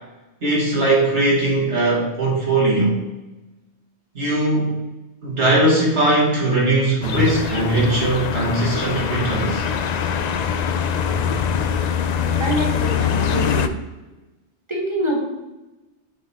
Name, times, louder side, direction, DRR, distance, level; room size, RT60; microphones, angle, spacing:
voice 1, 0.4-3.0 4.1-4.8 5.2-9.6, right 2 dB, 65° right, -6 dB, 2.1 m, -19 dB
sound 1, 7.0-13.7, left 7 dB, 65° left, 0.4 m, -23 dB
voice 2, 12.4-13.8 14.7-15.2, right 1 dB, 25° right, -2 dB, 1.8 m, -25 dB
8.4 x 4.0 x 4.2 m, 1.1 s
omnidirectional pair, 1.2 m